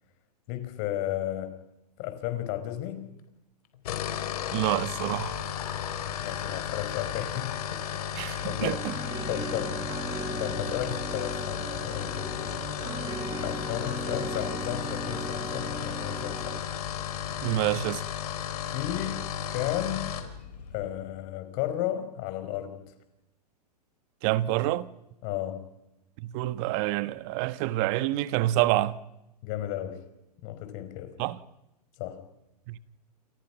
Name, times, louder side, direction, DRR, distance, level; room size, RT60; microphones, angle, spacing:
voice 1, 0.5-1.6 2.0-3.1 6.2-8.9 9.3-9.8 10.4-12.6 13.4-16.6 18.7-20.1 20.7-22.8 25.2-25.6 29.4-30.0 30.4-31.2 32.0-32.2, left 12 dB, 45° left, 5.3 m, -34 dB
sound 1, 3.7-20.3, left 9 dB, 65° left, 4.4 m, -34 dB
voice 2, 4.5-5.4 8.1-8.9 17.4-18.0 24.2-24.9 26.2-29.0 31.2-31.4 32.7-32.8, right 16 dB, 45° right, 1.4 m, -27 dB
sound 2, 5.1-21.0, left 5 dB, 80° left, 6.0 m, -44 dB
sound 3, 8.6-16.6, right 3 dB, 20° right, 3.1 m, -38 dB
30.0 x 28.5 x 6.1 m
hypercardioid pair, 120°, 21 cm